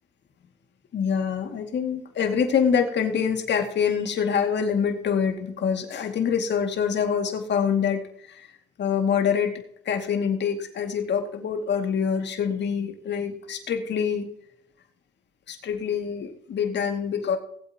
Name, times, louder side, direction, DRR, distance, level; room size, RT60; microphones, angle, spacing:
voice 1, 0.9-8.0 8.3-8.5 8.8-9.5 9.9-14.3 15.5-17.4, left 7 dB, 60° left, 5 dB, 2.3 m, -25 dB
19.5 x 8.5 x 2.9 m, 0.71 s
cardioid pair, 90°, 20 cm